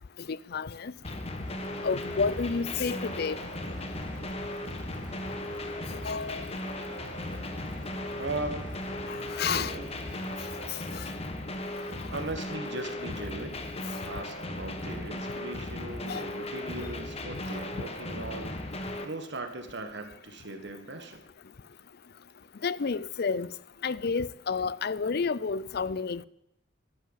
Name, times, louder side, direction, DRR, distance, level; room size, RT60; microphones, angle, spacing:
voice 1, 0.2-0.9 1.8-3.5 6.0-6.5 9.1-9.7 10.7-11.1 16.1-16.2 22.6-23.5 23.8-26.3, left 5 dB, 55° left, 0.5 m, -30 dB
sound 1, 1.0-19.0, left 1 dB, 35° left, 1.5 m, -37 dB
sound 2, 1.4-10.7, equal, 25° right, 6.3 m, -46 dB
voice 2, 8.2-8.8 9.5-9.9 11.7-13.6 14.0-21.3, right 2 dB, 65° right, 1.7 m, -39 dB
12.0 x 12.0 x 7.5 m
head